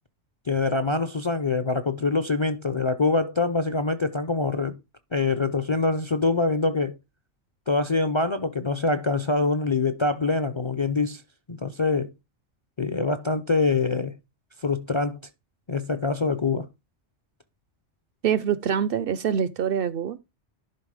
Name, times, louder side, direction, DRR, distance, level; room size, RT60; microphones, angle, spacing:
voice 1, 0.5-4.8 5.1-7.0 7.7-11.2 11.5-12.1 12.8-14.2 14.6-15.2 15.7-16.7, left 3 dB, 35° left, 0.5 m, -24 dB
voice 2, 18.2-20.2, right 8 dB, 60° right, 0.7 m, -25 dB
11.0 x 3.8 x 4.9 m
omnidirectional pair, 1.2 m